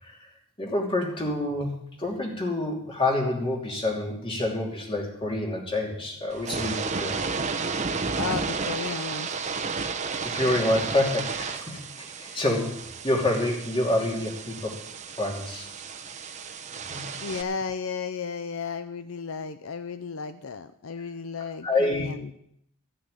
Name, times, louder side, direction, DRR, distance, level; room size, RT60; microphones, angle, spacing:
voice 1, 0.6-7.2 10.2-14.7 15.1-15.7 16.9-17.0 21.6-22.1, left 2 dB, 25° left, 0 dB, 2.9 m, -27 dB
sound 1, 6.3-17.4, right 4 dB, 35° right, 0.9 m, -32 dB
voice 2, 8.1-9.4 17.2-22.3, left 5 dB, 70° left, 10 dB, 0.6 m, -34 dB
14.5 x 6.5 x 9.9 m, 0.72 s
head